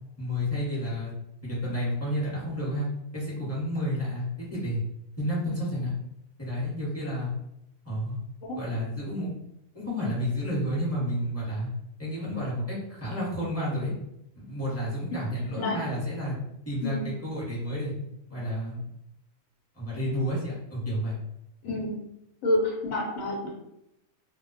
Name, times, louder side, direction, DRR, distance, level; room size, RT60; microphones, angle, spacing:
voice 1, 0.2-1.1 1.4-4.8 5.2-5.9 6.4-7.3 7.8-8.2 8.5-9.3 9.7-11.7 12.0-13.9 14.4-16.4 16.7-17.9 18.3-18.8 19.8-21.1, equal, 10° left, -7 dB, 0.9 m, -30 dB
voice 2, 21.6-22.0 22.4-23.5, left 1 dB, 75° left, -3 dB, 1.1 m, -28 dB
2.4 x 2.1 x 3.9 m, 0.82 s
omnidirectional pair, 1.5 m